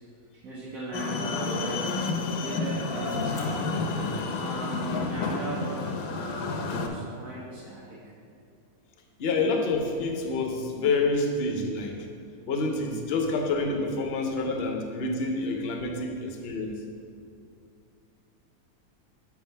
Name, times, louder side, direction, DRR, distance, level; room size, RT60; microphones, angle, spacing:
voice 1, 0.4-2.0 2.4-3.8 4.3-5.9 6.1-8.0, right 2 dB, 65° right, -8 dB, 1.3 m, -37 dB
sound 1, 0.9-6.9, left 4 dB, 75° left, 1.0 m, -30 dB
voice 2, 9.2-12.0 12.5-16.8, left 3 dB, 55° left, 3 dB, 0.8 m, -28 dB
6.5 x 3.5 x 5.4 m, 2.4 s
omnidirectional pair, 1.6 m